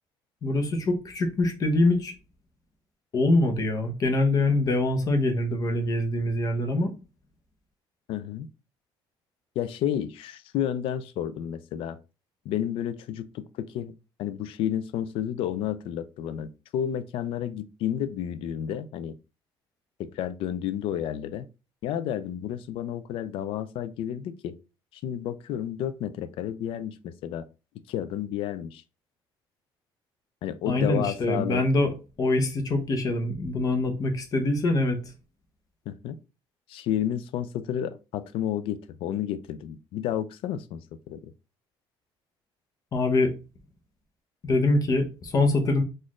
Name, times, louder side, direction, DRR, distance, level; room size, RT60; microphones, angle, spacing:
voice 1, 0.4-2.1 3.1-6.9 30.7-35.1 42.9-43.3 44.4-45.8, left 2 dB, 40° left, 0.8 m, -24 dB
voice 2, 8.1-8.5 9.6-12.0 12.5-13.9 14.2-19.2 20.0-21.5 21.8-24.6 25.0-27.5 27.9-28.8 30.4-31.6 35.9-36.2 36.7-41.3, left 10 dB, 70° left, 0.4 m, -31 dB
4.0 x 2.5 x 3.0 m
cardioid pair, 140°, 9 cm